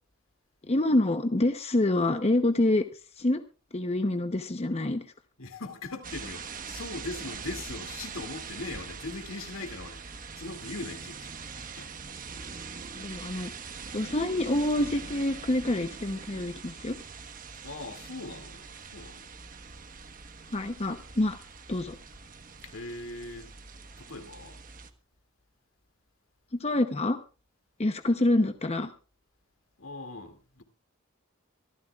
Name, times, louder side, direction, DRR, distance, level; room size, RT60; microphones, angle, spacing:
voice 1, 0.7-2.8 3.2-3.4 3.7-5.0 12.9-13.5 13.9-17.0 20.5-21.4 21.7-22.0 26.5-27.2 27.8-28.9, left 1 dB, 30° left, 0.8 m, -26 dB
voice 2, 5.4-10.0 10.4-11.4 11.8-11.9 17.6-19.3 22.6-23.5 24.0-24.6 29.8-30.6, left 2 dB, 75° left, 2.4 m, -40 dB
sound 1, 6.0-24.9, right 5 dB, 40° right, 1.2 m, -43 dB
24.5 x 14.0 x 2.4 m
head